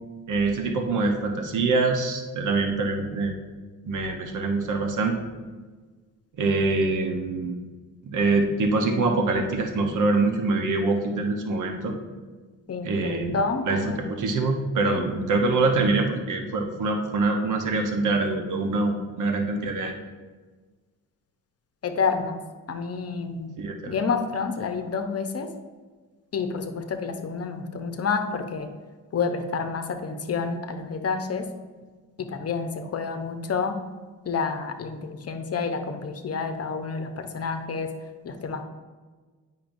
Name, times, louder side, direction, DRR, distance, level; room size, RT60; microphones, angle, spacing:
voice 1, 0.3-3.3 3.8-5.2 6.4-7.6 8.0-11.9 12.8-13.4 13.7-20.0 23.6-24.0, right 3 dB, 65° right, 3 dB, 0.9 m, -24 dB
voice 2, 12.7-14.0 14.8-15.0 21.8-22.4 22.7-23.5 23.9-25.5 26.3-28.7 29.1-31.5 32.2-33.8 34.3-37.9 38.2-38.6, left 5 dB, 45° left, 6 dB, 0.8 m, -29 dB
8.7 x 5.6 x 2.6 m, 1.4 s
cardioid pair, 90°, 33 cm